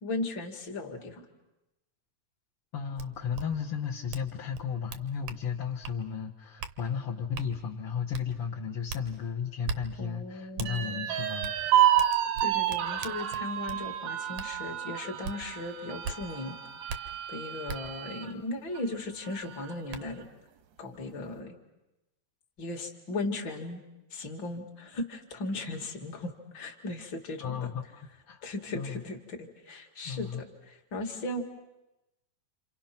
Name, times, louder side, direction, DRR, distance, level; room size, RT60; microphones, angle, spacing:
voice 1, 0.0-1.3 10.0-11.2 12.4-16.6 16.9-17.0 17.3-20.3 20.8-21.6 22.6-23.8 24.1-27.7 28.4-31.5, left 2 dB, 40° left, 3 dB, 1.9 m, -37 dB
voice 2, 2.7-11.5 27.4-27.8 28.3-28.4 28.7-29.0 30.0-30.4, left 7 dB, 60° left, -4 dB, 1.4 m, -34 dB
sound 1, 3.0-3.1 3.3-3.4 4.1-4.3 4.5-5.4 5.8-6.0 6.6-6.7 7.3-7.5 8.1-8.2 8.9-9.0 9.6-9.8 10.6-10.7 11.4-11.5 12.0-13.8 14.4-14.5 15.2-15.4 16.0-16.2 16.9-17.0 17.7-17.8 19.3-19.4 19.9-20.0, right 5 dB, 70° right, 1.8 m, -37 dB
sound 2, 10.7-18.3 18.8-18.9 19.2-19.9, right 11 dB, 85° right, 3.3 m, -29 dB
29.0 x 27.5 x 5.9 m, 0.98 s
omnidirectional pair, 4.6 m